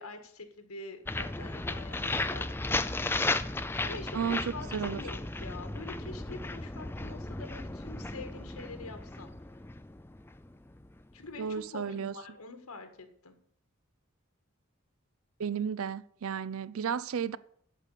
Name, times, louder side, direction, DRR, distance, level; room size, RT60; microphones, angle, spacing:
voice 1, 0.0-3.1 3.8-9.3 11.1-13.3, left 3 dB, 85° left, 1.8 m, -45 dB
sound 1, 1.1-10.9, left 2 dB, 10° left, 0.4 m, -35 dB
voice 2, 4.1-5.0 11.4-12.1 15.4-17.4, right 7 dB, 70° right, 0.5 m, -33 dB
8.2 x 6.7 x 8.3 m
head